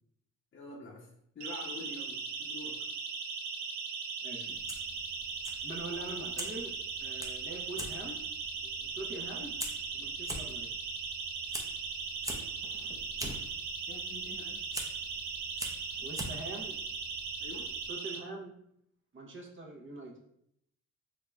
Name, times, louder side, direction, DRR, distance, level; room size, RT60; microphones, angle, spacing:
voice 1, 0.5-1.1 1.3-2.8 13.9-14.7 17.4-17.7, left 2 dB, 40° left, -4 dB, 0.8 m, -46 dB
Siren, 1.4-18.2, right 5 dB, 70° right, 0.6 m, -38 dB
voice 2, 4.2-4.6 5.6-6.7 7.0-8.2 8.6-9.6 9.9-10.7 16.0-16.8 17.9-18.5 19.1-20.1, right 2 dB, 40° right, 0 dB, 0.9 m, -43 dB
Fire, 4.5-17.9, right 1 dB, 10° right, 0.6 m, -45 dB
3.7 x 3.4 x 2.3 m, 0.74 s
cardioid pair, 90°, 30 cm